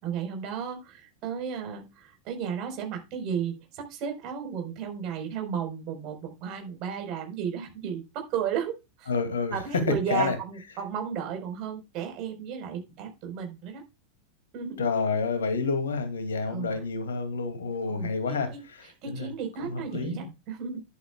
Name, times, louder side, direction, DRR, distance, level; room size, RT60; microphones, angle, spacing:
voice 1, 0.0-9.1 9.5-13.8 14.5-14.9 16.4-16.8 17.9-20.8, right 8 dB, 40° right, 4.7 m, -34 dB
voice 2, 9.1-9.5 10.1-10.3 14.8-18.5 19.1-19.3 19.6-20.3, left 4 dB, 65° left, 2.5 m, -29 dB
11.5 x 11.0 x 2.4 m
figure-of-eight pair, 90°, 0 cm